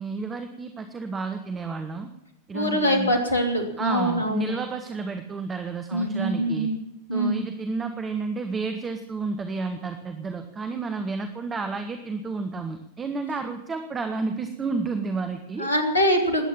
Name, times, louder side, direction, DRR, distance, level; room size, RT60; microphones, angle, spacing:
voice 1, 0.0-2.1 2.5-3.1 3.8-6.7 7.1-15.7, right 4 dB, 20° right, 7 dB, 1.4 m, -31 dB
voice 2, 2.5-4.5 5.9-6.8 7.1-7.4 15.6-16.5, equal, 80° left, 5 dB, 3.0 m, -24 dB
20.5 x 9.1 x 7.2 m, 0.91 s
figure-of-eight pair, 90°, 0 cm